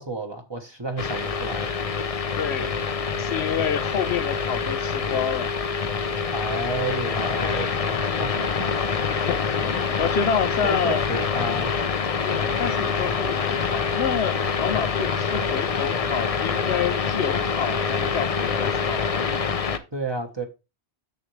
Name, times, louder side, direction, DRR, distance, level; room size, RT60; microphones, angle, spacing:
voice 1, 0.0-1.7 6.3-8.9 10.6-11.7 19.9-20.4, right 2 dB, 25° right, 1.1 m, -31 dB
sound 1, 1.0-19.8, left 5 dB, 40° left, 0.6 m, -26 dB
voice 2, 2.4-2.8 3.2-5.5 7.5-7.7 9.1-11.1 12.2-19.1, left 7 dB, 70° left, 0.9 m, -28 dB
7.2 x 7.1 x 3.2 m
omnidirectional pair, 1.2 m